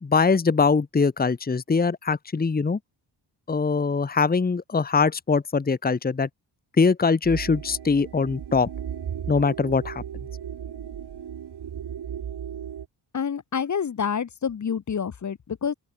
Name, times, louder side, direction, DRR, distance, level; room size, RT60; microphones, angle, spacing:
voice 1, 0.0-2.8 3.5-6.3 6.8-8.7 9.3-10.0, left 4 dB, 20° left, 1.2 m, -22 dB
sound 1, 7.2-12.8, right 8 dB, 70° right, 4.4 m, -35 dB
voice 2, 13.1-15.7, left 7 dB, 45° left, 1.4 m, -28 dB
open air
wide cardioid pair, 165°, 42 cm